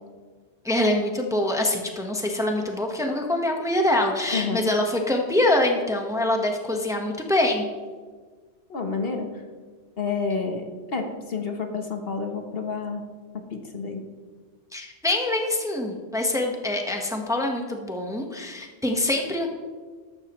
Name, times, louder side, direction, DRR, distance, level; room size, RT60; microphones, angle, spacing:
voice 1, 0.6-7.6 14.7-19.5, left 1 dB, 5° right, 2 dB, 1.2 m, -24 dB
voice 2, 4.3-4.6 8.7-9.3 10.0-10.6 10.9-13.0 13.3-14.0, left 4 dB, 55° left, 4 dB, 1.3 m, -29 dB
13.5 x 12.0 x 3.1 m, 1.5 s
omnidirectional pair, 1.2 m